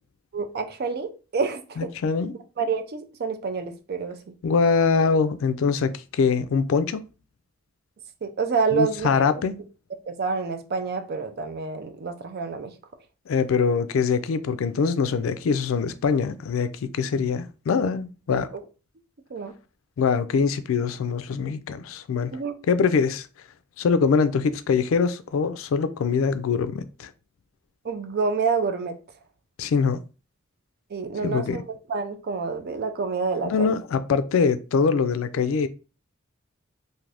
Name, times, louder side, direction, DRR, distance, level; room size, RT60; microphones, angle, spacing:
voice 1, 0.3-1.9 2.6-4.2 8.2-9.3 10.1-12.7 18.5-18.6 19.3-19.5 22.3-22.6 27.8-29.0 30.9-31.6 31.9-33.8, right 5 dB, 55° right, 0.4 m, -28 dB
voice 2, 1.8-2.3 4.4-7.0 8.7-9.6 13.3-18.5 20.0-22.3 22.7-23.3 23.8-27.1 29.6-30.0 31.2-31.6 33.4-35.7, left 5 dB, 85° left, 0.3 m, -23 dB
2.6 x 2.5 x 3.3 m
head